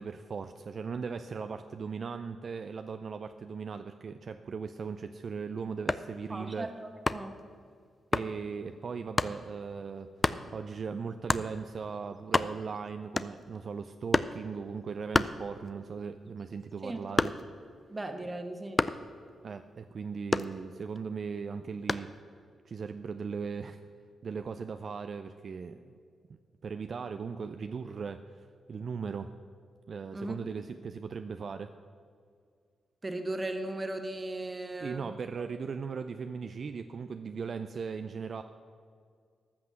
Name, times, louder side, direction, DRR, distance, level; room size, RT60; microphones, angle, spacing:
voice 1, 0.0-6.7 8.1-17.3 19.4-22.1 22.6-23.8 24.2-26.0 26.6-28.4 28.7-29.3 29.9-31.7 34.8-38.4, right 5 dB, 60° right, 8 dB, 0.4 m, -38 dB
sound 1, 5.7-6.2 7.1-7.4 8.1-8.3 9.2-9.4 10.2-10.5 11.3-11.5 12.0-12.1 12.2-12.8 13.2-13.6 14.1-14.4 15.1-15.9 16.3-17.6 18.8-19.1 20.3-21.0 21.9-22.2, left 3 dB, 30° left, 0.5 m, -29 dB
voice 2, 6.3-7.4 16.8-17.0 17.9-18.8 30.1-30.3 33.0-35.1, right 2 dB, 30° right, 6 dB, 1.4 m, -37 dB
13.5 x 5.9 x 7.5 m, 2.1 s
supercardioid pair, 50°, 0 cm